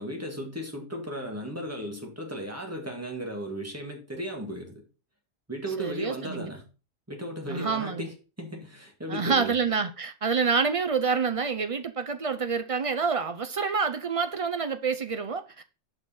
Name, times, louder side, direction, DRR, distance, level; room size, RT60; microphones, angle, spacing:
voice 1, 0.0-4.8 5.5-6.6 7.1-9.5, equal, 15° right, 1.7 m, -36 dB
voice 2, 5.8-6.5 7.5-8.1 9.1-15.6, right 5 dB, 50° right, 0.4 m, -27 dB
6.4 x 5.5 x 4.2 m
omnidirectional pair, 1.2 m